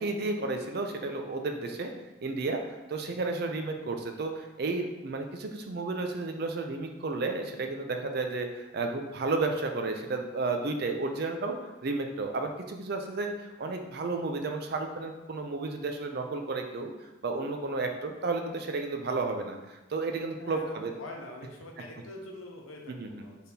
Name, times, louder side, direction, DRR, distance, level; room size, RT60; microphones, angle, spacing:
voice 1, 0.0-1.9 2.2-20.9 22.9-23.2, right 3 dB, 50° right, 5 dB, 0.4 m, -32 dB
voice 2, 20.4-23.4, left 1 dB, 85° left, 1 dB, 0.7 m, -44 dB
4.1 x 3.4 x 2.7 m, 1.1 s
head